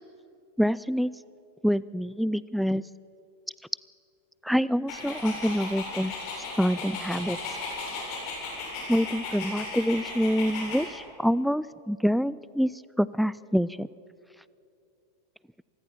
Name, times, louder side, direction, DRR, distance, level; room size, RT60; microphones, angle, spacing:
voice 1, 0.6-1.1 1.6-2.8 4.4-6.1 6.6-7.4 8.9-12.7 13.0-13.9, equal, ahead, 20 dB, 0.4 m, -26 dB
Dog, 4.9-10.9, left 3 dB, 45° left, 7.7 m, -36 dB
26.0 x 20.5 x 6.0 m, 2.6 s
figure-of-eight pair, 90°, 0 cm